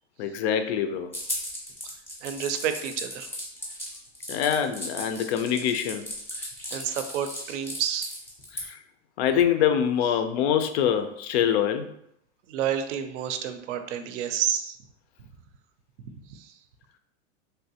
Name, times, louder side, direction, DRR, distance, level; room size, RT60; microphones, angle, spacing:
voice 1, 0.2-1.1 4.3-6.0 8.5-8.8 9.2-11.9, left 9 dB, 60° left, 8 dB, 0.5 m, -24 dB
sound 1, 1.1-8.6, left 1 dB, 5° left, 0.5 m, -36 dB
voice 2, 1.8-3.3 6.3-8.1 12.5-14.8 16.2-16.6, right 9 dB, 70° right, 8 dB, 0.5 m, -30 dB
3.3 x 2.6 x 2.8 m, 0.74 s
supercardioid pair, 155°, 37 cm